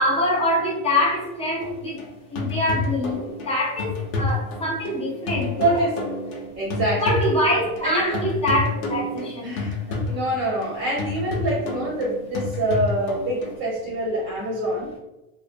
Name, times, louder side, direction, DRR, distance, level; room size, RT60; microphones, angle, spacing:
voice 1, 0.0-2.0 2.3-5.7 7.0-9.6, left 1 dB, 15° left, -4 dB, 0.7 m, -24 dB
sound 1, 1.6-13.6, left 3 dB, 70° left, 0.9 m, -30 dB
voice 2, 5.6-6.1 6.6-7.2 7.8-8.2 9.4-9.8 10.0-14.9, right 1 dB, 25° right, -5 dB, 0.8 m, -25 dB
2.6 x 2.1 x 2.5 m, 1.0 s
supercardioid pair, 135°, 44 cm